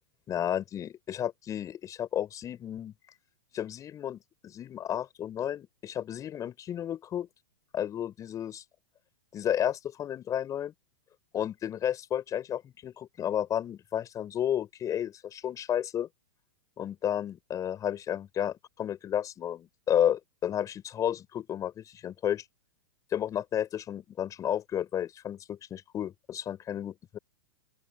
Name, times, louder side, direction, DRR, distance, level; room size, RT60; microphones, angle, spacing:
voice 1, 0.3-2.9 3.5-7.3 7.7-8.6 9.3-10.7 11.3-16.1 16.8-22.4 23.1-27.2, left 10 dB, 25° left, 6.0 m, -32 dB
open air
hypercardioid pair, 115°, 12 cm